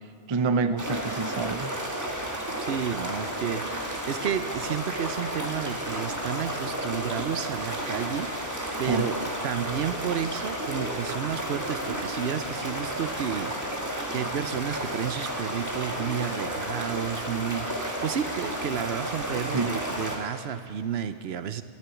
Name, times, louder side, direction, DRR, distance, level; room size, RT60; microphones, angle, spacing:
voice 1, 0.3-1.7 8.9-9.2 19.5-19.8, right 4 dB, 35° right, 11 dB, 0.4 m, -27 dB
sound 1, 0.8-20.2, right 1 dB, 15° right, 1.8 m, -32 dB
voice 2, 2.6-9.2 9.4-21.6, right 8 dB, 65° right, 12 dB, 0.9 m, -32 dB
13.5 x 9.9 x 9.1 m, 2.5 s
omnidirectional pair, 1.2 m